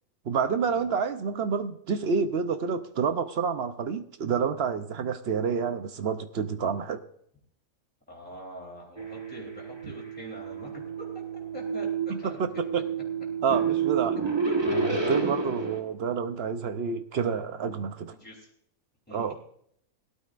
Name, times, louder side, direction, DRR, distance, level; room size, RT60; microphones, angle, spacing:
voice 1, 0.2-7.0 12.1-12.8 13.4-14.2 14.7-18.2 19.1-19.3, right 6 dB, 55° right, 10 dB, 0.8 m, -28 dB
voice 2, 8.1-11.2 11.5-12.4 14.4-14.5 14.9-15.5 18.2-18.5 19.1-19.4, equal, 5° left, -3 dB, 3.3 m, -44 dB
sound 1, 9.0-15.8, right 5 dB, 20° right, 1.3 m, -30 dB
18.0 x 12.0 x 2.5 m, 0.67 s
omnidirectional pair, 1.5 m